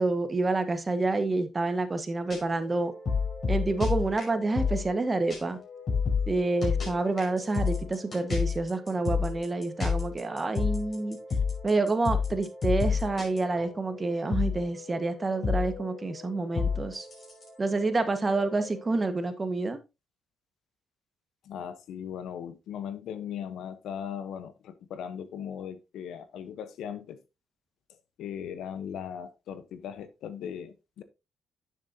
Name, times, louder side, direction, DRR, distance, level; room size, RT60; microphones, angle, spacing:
voice 1, 0.0-2.9 3.5-5.6 6.3-11.2 11.6-17.1 17.6-19.8, right 3 dB, 25° right, 1.5 m, -28 dB
sound 1, 2.2-5.0 5.3-5.4 5.7-14.0 14.3-19.1, left 5 dB, 45° left, 5.7 m, -31 dB
voice 2, 21.4-27.2 27.9-31.0, left 8 dB, 75° left, 1.0 m, -38 dB
9.9 x 7.4 x 2.8 m
cardioid pair, 80°, 0 cm